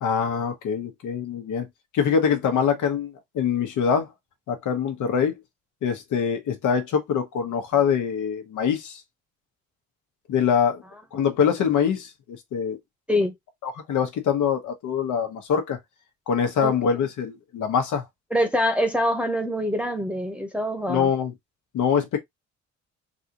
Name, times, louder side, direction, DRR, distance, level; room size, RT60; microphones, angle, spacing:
voice 1, 0.0-1.6 1.9-4.1 4.5-5.4 5.8-9.0 10.3-10.8 11.1-12.8 13.6-15.8 16.3-18.0 20.9-21.3 21.7-22.2, left 7 dB, 80° left, 1.3 m, -24 dB
voice 2, 18.3-21.1, equal, 5° right, 0.9 m, -24 dB
4.1 x 2.6 x 2.9 m
cardioid pair, 90°, 30 cm